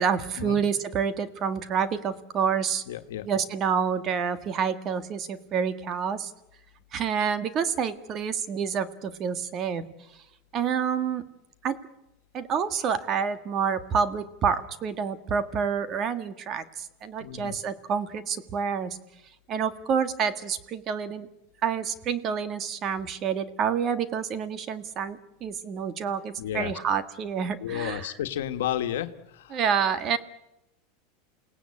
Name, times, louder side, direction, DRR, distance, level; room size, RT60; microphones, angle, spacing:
voice 1, 0.0-2.8 3.2-6.3 6.9-9.8 10.5-11.2 11.6-11.8 12.3-19.0 19.5-21.3 21.6-28.1 29.5-30.2, right 7 dB, 35° right, 12 dB, 1.8 m, -28 dB
voice 2, 2.9-3.3 17.2-17.6 26.4-26.7 27.6-29.6, left 11 dB, 85° left, 7 dB, 1.5 m, -32 dB
29.0 x 17.5 x 8.6 m, 0.90 s
supercardioid pair, 140°, 0 cm